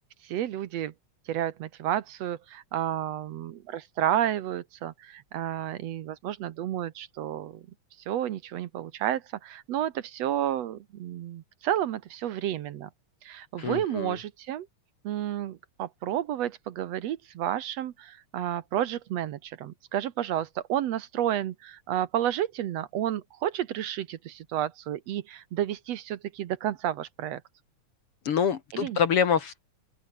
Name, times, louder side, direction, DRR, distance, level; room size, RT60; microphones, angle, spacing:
voice 1, 0.2-0.9 1.3-7.6 8.1-12.9 13.2-14.7 15.0-27.4 28.7-29.0, right 11 dB, 70° right, 2.0 m, -31 dB
voice 2, 13.6-14.1 28.3-29.6, left 7 dB, 55° left, 2.1 m, -26 dB
open air
omnidirectional pair, 3.4 m